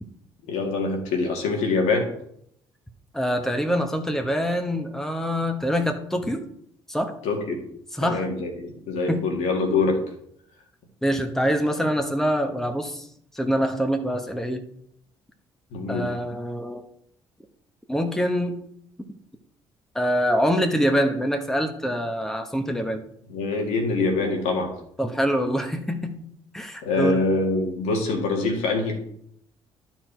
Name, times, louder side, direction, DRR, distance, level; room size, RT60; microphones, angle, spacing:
voice 1, 0.5-2.1 7.2-7.6 8.0-10.0 15.7-16.1 23.3-24.7 26.8-28.9, left 3 dB, 70° left, 1 dB, 2.1 m, -24 dB
voice 2, 3.1-6.4 6.9-7.1 7.9-8.3 9.1-9.3 11.0-13.1 13.3-14.6 15.9-16.8 17.9-18.6 19.9-23.0 25.0-26.2 26.5-27.3, equal, 5° left, 5 dB, 1.3 m, -25 dB
11.5 x 4.6 x 4.6 m, 0.70 s
hypercardioid pair, 50°, 12 cm